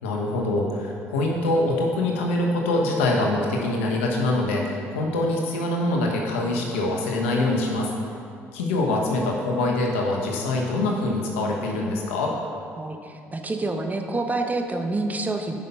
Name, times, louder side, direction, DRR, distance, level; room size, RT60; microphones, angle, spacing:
voice 1, 0.0-7.9 8.5-12.4, left 2 dB, 85° left, 0 dB, 1.2 m, -24 dB
voice 2, 12.8-15.6, right 2 dB, 25° right, 4 dB, 1.1 m, -27 dB
9.1 x 5.9 x 5.6 m, 2.3 s
hypercardioid pair, 55°, 7 cm